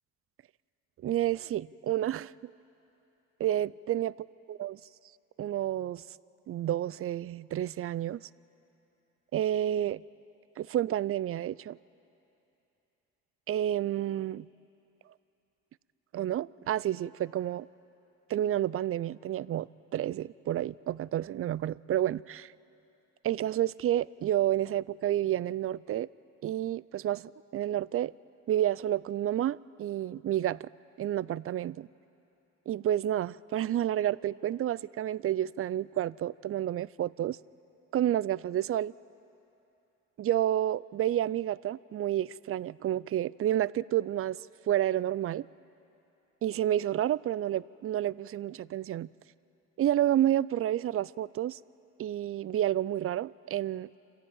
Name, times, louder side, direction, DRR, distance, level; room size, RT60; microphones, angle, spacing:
voice 1, 1.0-2.3 3.4-4.1 4.5-4.8 5.4-6.0 6.5-8.2 9.3-10.0 10.6-11.8 13.5-14.5 16.1-17.7 18.3-22.5 23.2-26.1 26.4-28.1 28.5-30.7 31.0-31.9 32.7-37.4 37.9-38.9 40.2-44.4 44.7-45.5 46.4-49.1 49.8-51.6 52.0-53.9, right 12 dB, 50° right, 21 dB, 0.4 m, -30 dB
26.5 x 15.5 x 8.9 m, 2.8 s
cardioid pair, 90°, 30 cm